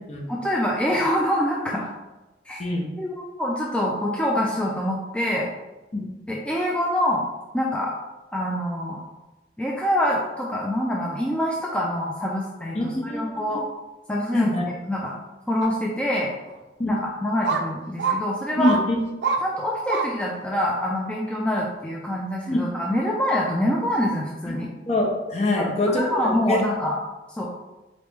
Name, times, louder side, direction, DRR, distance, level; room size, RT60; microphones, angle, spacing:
voice 1, 0.3-1.9 2.5-2.6 3.0-5.5 6.3-7.2 7.5-7.9 8.3-9.0 9.6-13.6 14.1-14.5 14.9-15.1 15.5-16.3 16.9-18.8 19.4-24.7 25.6-27.0 27.4-27.5, equal, 5° left, -3 dB, 0.3 m, -25 dB
voice 2, 12.7-13.2 13.5-13.6 14.3-14.6 16.8-16.9 18.6-19.0 22.5-22.6 24.5-24.6 24.9-26.0 26.5-26.6, left 1 dB, 40° left, 0 dB, 0.8 m, -24 dB
sound 1, 15.6-15.7 16.4-16.5 17.4-17.6 18.0-18.2 18.6-18.8 19.2-19.4 19.9-20.1 20.6-20.7, right 5 dB, 75° right, 0.4 m, -25 dB
4.0 x 3.1 x 3.4 m, 1.1 s
head